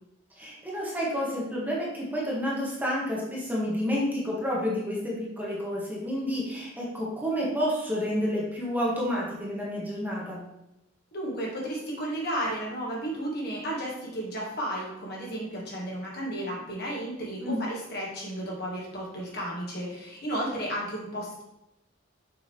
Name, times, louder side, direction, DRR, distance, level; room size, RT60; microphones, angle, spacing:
voice 1, 0.4-10.4 17.4-17.6, equal, 10° right, -5 dB, 1.6 m, -30 dB
voice 2, 11.1-21.4, right 1 dB, 55° left, -4 dB, 2.1 m, -33 dB
6.8 x 5.1 x 3.5 m, 0.86 s
head